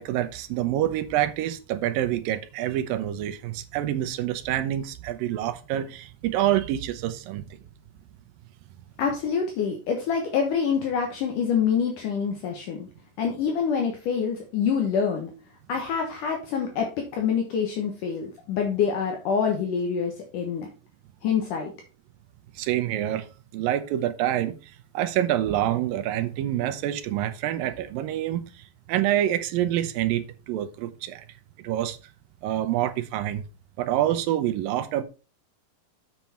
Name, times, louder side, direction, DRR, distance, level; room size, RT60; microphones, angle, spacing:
voice 1, 0.0-7.6 22.6-23.3 23.5-31.3 31.6-32.0 32.4-33.4 33.8-35.0, right 12 dB, 75° right, 2.4 m, -27 dB
voice 2, 9.0-12.9 13.2-15.3 15.7-20.7 21.2-21.7, left 6 dB, 65° left, 2.6 m, -26 dB
7.5 x 7.3 x 4.3 m
omnidirectional pair, 4.3 m